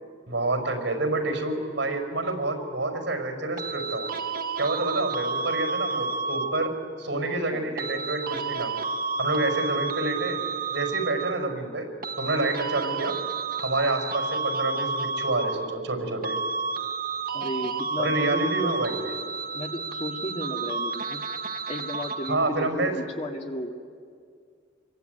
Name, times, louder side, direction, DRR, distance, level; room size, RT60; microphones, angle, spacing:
voice 1, 0.3-4.1 4.6-8.7 9.2-10.4 10.7-11.9 12.2-13.2 13.6-16.4 18.0-19.1 22.3-22.9, right 2 dB, 80° right, 4 dB, 5.1 m, -28 dB
sound 1, 3.6-6.9 7.8-11.6 12.0-16.0 16.2-22.6, right 4 dB, 50° right, 1.1 m, -31 dB
voice 2, 17.3-18.8 19.5-21.2 21.7-23.8, left 1 dB, 35° left, 2 dB, 2.1 m, -34 dB
26.5 x 23.5 x 9.2 m, 2.2 s
head